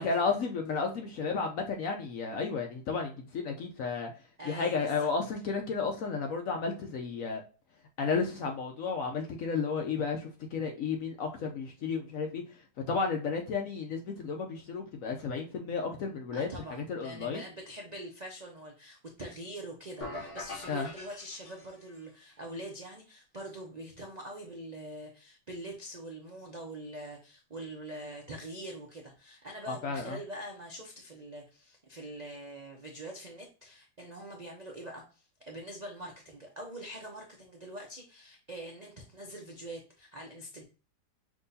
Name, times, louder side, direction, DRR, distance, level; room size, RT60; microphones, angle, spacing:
voice 1, 0.0-4.1 4.5-7.4 8.0-12.4 12.9-17.4 20.7-20.9 29.7-30.2, left 5 dB, 65° left, 3 dB, 0.8 m, -32 dB
voice 2, 4.4-5.1 16.3-40.6, right 1 dB, 75° right, 0 dB, 0.3 m, -44 dB
sound 1, 20.0-22.1, left 2 dB, 45° left, 1.6 m, -43 dB
6.0 x 2.9 x 2.7 m, 0.36 s
omnidirectional pair, 1.9 m